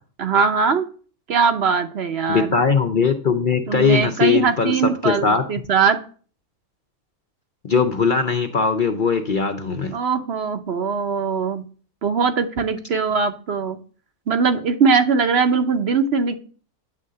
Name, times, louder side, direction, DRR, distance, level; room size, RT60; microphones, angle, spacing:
voice 1, 0.2-0.9 1.3-2.6 3.7-6.0 9.9-11.6 12.0-13.8 14.3-16.3, right 5 dB, 55° right, 8 dB, 0.9 m, -21 dB
voice 2, 2.3-4.7 5.0-5.4 7.6-9.9, left 5 dB, 50° left, 6 dB, 0.6 m, -20 dB
9.7 x 3.7 x 6.6 m, 0.41 s
omnidirectional pair, 1.5 m